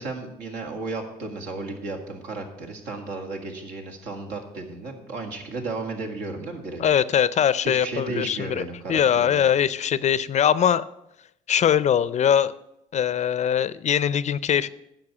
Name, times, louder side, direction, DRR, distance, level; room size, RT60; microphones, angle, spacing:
voice 1, 0.0-6.9 7.6-9.5, right 3 dB, 80° right, 2 dB, 2.1 m, -34 dB
voice 2, 6.8-10.8 11.5-12.5 12.9-14.7, left 9 dB, 45° left, 18 dB, 0.5 m, -22 dB
9.8 x 6.1 x 8.4 m, 0.82 s
cardioid pair, 90°, 17 cm